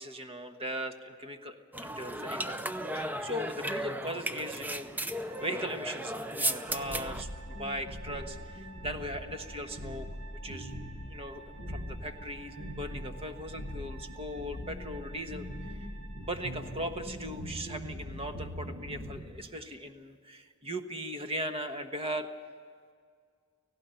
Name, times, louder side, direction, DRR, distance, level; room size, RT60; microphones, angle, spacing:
voice 1, 0.0-2.6 2.9-5.0 5.4-10.1 10.4-10.7 11.1-15.9 16.2-22.3, equal, 25° right, 7 dB, 1.2 m, -39 dB
sound 1, 1.7-7.2, right 1 dB, 10° right, 0.6 m, -35 dB
sound 2, 5.2-16.8, right 4 dB, 80° right, 4.5 m, -53 dB
sound 3, 6.7-19.3, equal, 65° right, 6.5 m, -42 dB
18.0 x 16.5 x 9.0 m, 2.1 s
head